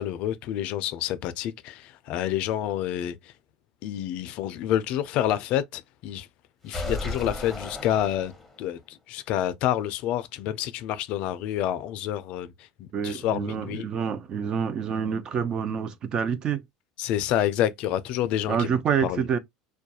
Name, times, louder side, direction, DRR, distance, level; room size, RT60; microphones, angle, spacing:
voice 1, 0.0-3.2 3.8-6.3 6.6-8.3 8.6-12.5 12.8-13.9 17.0-18.7 19.0-19.3, left 11 dB, 55° left, 0.3 m, -28 dB
sound 1, 6.7-8.7, left 2 dB, 5° left, 0.7 m, -34 dB
voice 2, 12.9-16.6 18.5-19.4, right 7 dB, 35° right, 0.4 m, -27 dB
2.3 x 2.2 x 2.8 m
cardioid pair, 135°, 2 cm